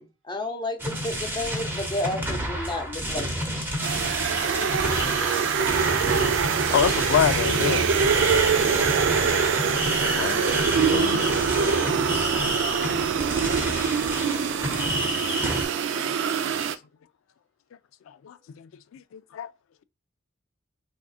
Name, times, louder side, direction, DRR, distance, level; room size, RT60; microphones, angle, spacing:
voice 1, 0.3-3.7, left 1 dB, 25° left, 0.6 m, -31 dB
sound 1, 0.8-15.7, equal, 10° right, 0.7 m, -29 dB
sound 2, 3.8-16.8, right 6 dB, 65° right, 0.3 m, -24 dB
voice 2, 3.9-6.4 8.8-12.0, right 4 dB, 85° right, 0.9 m, -38 dB
voice 3, 6.7-7.9 10.0-10.4 10.9-11.2 14.3-14.5 14.8-15.2 16.0-16.1 16.4-16.5 18.1-19.5, left 8 dB, 90° left, 0.3 m, -27 dB
3.5 x 2.7 x 2.4 m
head